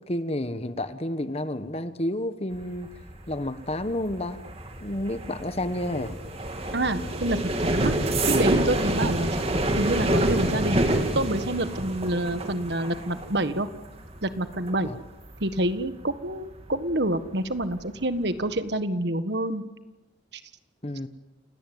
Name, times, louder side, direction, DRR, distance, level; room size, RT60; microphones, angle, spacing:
voice 1, 0.0-2.9 3.3-4.4 4.8-6.2 14.8-15.0 20.8-21.1, left 1 dB, 35° left, 11 dB, 1.3 m, -30 dB
sound 1, 2.5-17.2 17.5-17.9 18.2-18.6, right 1 dB, 30° right, 2.8 m, -28 dB
voice 2, 6.7-7.9 8.3-9.4 9.7-10.9 11.1-13.7 14.2-14.9 15.4-19.6, right 1 dB, 65° right, 11 dB, 1.6 m, -27 dB
29.0 x 18.0 x 9.4 m, 1.1 s
head